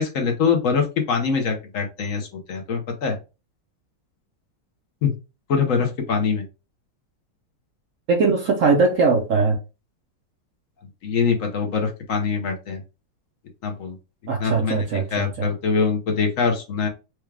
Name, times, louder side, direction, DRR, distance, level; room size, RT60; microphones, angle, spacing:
voice 1, 0.0-3.2 5.0-5.1 5.5-6.4 11.0-12.8 13.6-13.9 14.4-16.9, left 5 dB, 55° left, 1.0 m, -23 dB
voice 2, 8.1-9.6 14.3-15.5, right 4 dB, 60° right, 0.9 m, -20 dB
4.7 x 2.3 x 3.2 m
omnidirectional pair, 2.0 m